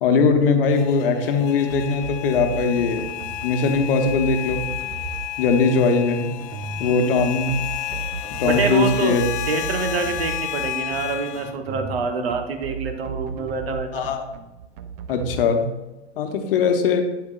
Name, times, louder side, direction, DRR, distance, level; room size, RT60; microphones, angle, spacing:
voice 1, 0.0-3.1 3.4-4.7 5.4-6.3 6.8-7.6 8.4-9.2 13.9-14.3 15.1-15.7 16.2-17.0, left 4 dB, 50° left, 6 dB, 1.1 m, -20 dB
sound 1, 0.7-11.5, left 13 dB, 20° left, 0.3 m, -32 dB
sound 2, 1.7-15.4, right 5 dB, 35° right, 0.5 m, -35 dB
voice 2, 6.8-7.2 8.4-9.2 9.5-14.0, right 4 dB, 60° right, 5 dB, 1.2 m, -26 dB
7.9 x 7.3 x 2.4 m, 1.1 s
figure-of-eight pair, 100°, 35 cm